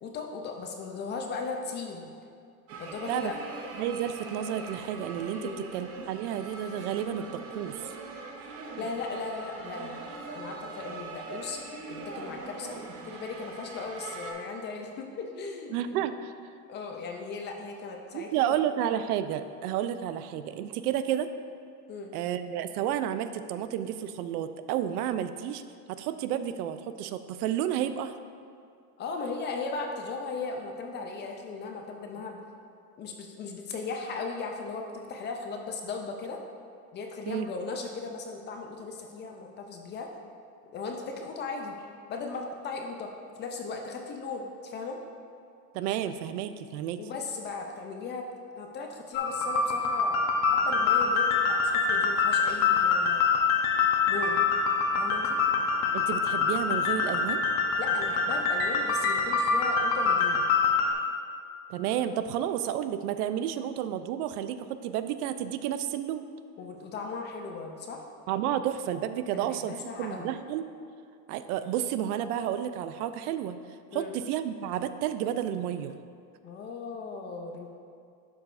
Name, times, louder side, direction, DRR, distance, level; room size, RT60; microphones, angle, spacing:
voice 1, 0.0-2.1 2.8-3.3 5.4-5.6 8.8-10.0 10.3-16.0 16.7-18.3 21.9-22.1 29.0-32.4 33.0-36.4 36.9-40.1 40.7-43.1 43.4-45.0 47.0-48.3 48.6-50.2 50.5-53.3 54.1-54.4 55.0-55.4 57.8-60.5 66.6-68.0 69.3-70.3 73.9-74.1 76.4-77.7, left 4 dB, 25° left, 3 dB, 0.4 m, -37 dB
sound 1, 2.7-14.3, right 3 dB, 30° right, 0.8 m, -42 dB
voice 2, 3.8-7.3 7.5-7.9 15.7-16.3 18.1-21.3 22.1-25.6 25.9-28.1 37.3-37.5 45.7-47.0 55.9-57.4 61.7-66.2 68.3-70.7 71.3-73.6 73.9-75.9, right 10 dB, 75° right, 11 dB, 0.5 m, -31 dB
sound 2, 49.1-60.9, left 5 dB, 50° left, 0.9 m, -25 dB
11.0 x 4.7 x 2.5 m, 2.4 s
supercardioid pair, 125°, 46 cm